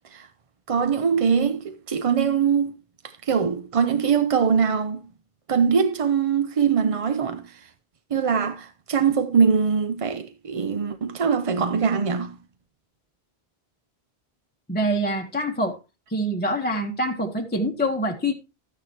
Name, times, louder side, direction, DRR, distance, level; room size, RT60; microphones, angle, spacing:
voice 1, 0.7-2.8 3.0-5.0 5.5-7.7 8.1-12.4, right 6 dB, 45° right, 0.5 m, -22 dB
voice 2, 14.7-15.8 16.1-18.3, equal, 10° left, 0.9 m, -25 dB
12.5 x 9.5 x 2.8 m
omnidirectional pair, 1.1 m